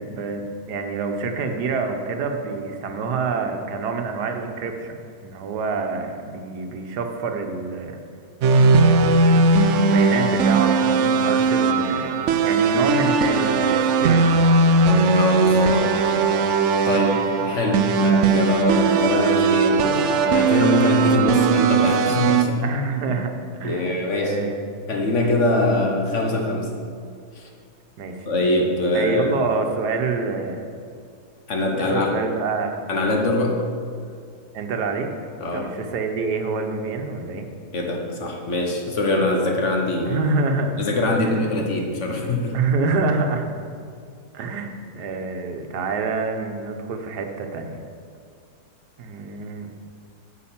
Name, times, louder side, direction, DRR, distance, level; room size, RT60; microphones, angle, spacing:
voice 1, 0.0-8.0 9.0-14.2 22.6-23.3 23.6-24.7 28.0-28.3 28.9-30.7 31.8-32.9 34.5-35.1 35.5-37.5 40.1-40.8 41.2-41.5 42.5-43.5 44.3-47.8 49.0-49.7, right 4 dB, 85° right, 5 dB, 1.4 m, -27 dB
sound 1, 8.4-22.4, right 3 dB, 70° right, 0.7 m, -18 dB
voice 2, 15.1-16.1 16.8-22.6 23.1-23.2 23.6-24.4 24.9-26.7 27.3-27.5 28.3-29.3 31.5-32.1 32.9-33.7 35.4-35.7 37.7-40.2 40.6-42.6, left 2 dB, 50° left, 1 dB, 1.3 m, -23 dB
8.5 x 4.9 x 7.2 m, 2.2 s
omnidirectional pair, 1.7 m